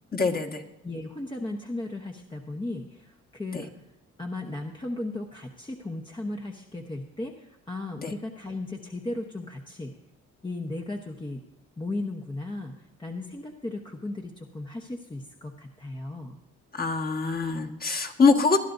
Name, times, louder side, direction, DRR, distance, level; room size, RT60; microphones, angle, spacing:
voice 1, 0.1-0.6 3.5-3.6 8.0-8.1 16.7-18.6, left 4 dB, 30° left, 2 dB, 1.6 m, -24 dB
voice 2, 0.8-3.7 4.2-9.9 10.4-11.4 11.8-16.4, left 2 dB, 15° left, 2 dB, 1.0 m, -36 dB
20.5 x 12.0 x 2.6 m, 0.93 s
cardioid pair, 90°, 30 cm